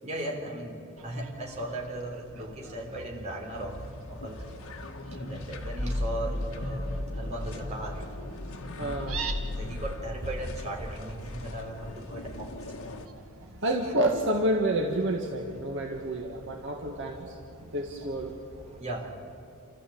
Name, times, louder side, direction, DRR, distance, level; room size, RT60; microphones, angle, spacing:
voice 1, 0.0-4.5 5.1-8.1 8.8-9.0 9.4-13.0 13.8-13.9 18.7-19.2, right 1 dB, 30° right, 0 dB, 3.9 m, -37 dB
Fowl, 1.0-18.8, right 4 dB, 80° right, 2.1 m, -47 dB
sound 1, 3.5-13.1, left 1 dB, 75° left, 1.7 m, -36 dB
voice 2, 8.8-9.2 13.6-17.4 17.7-18.3, right 1 dB, 60° right, 1 dB, 1.8 m, -29 dB
29.5 x 14.0 x 8.6 m, 2.9 s
head